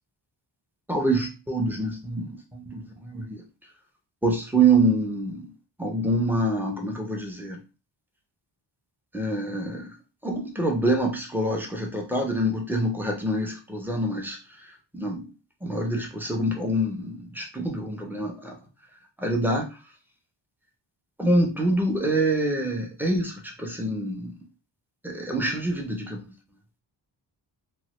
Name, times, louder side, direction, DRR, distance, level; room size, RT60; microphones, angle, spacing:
voice 1, 0.9-3.4 4.2-5.4 5.8-7.6 9.1-9.9 10.2-14.4 14.9-15.3 15.6-18.6 19.2-19.7 21.2-24.3 25.0-26.3, right 2 dB, 5° right, 0 dB, 0.5 m, -26 dB
3.0 x 2.1 x 2.9 m, 0.31 s
wide cardioid pair, 165°, 46 cm